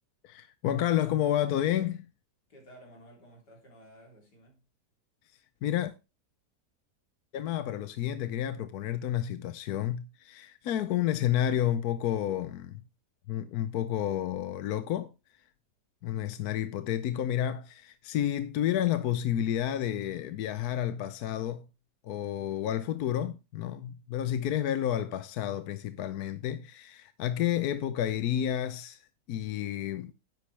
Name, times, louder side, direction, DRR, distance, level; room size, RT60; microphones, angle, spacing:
voice 1, 0.2-2.0 5.6-5.9 7.3-12.8 13.3-15.1 16.0-21.7 22.0-29.0 29.3-30.1, left 11 dB, 75° left, 1.2 m, -30 dB
voice 2, 2.5-4.7 22.4-22.8, right 1 dB, 90° left, 4.1 m, -55 dB
10.5 x 8.5 x 3.3 m
omnidirectional pair, 1.7 m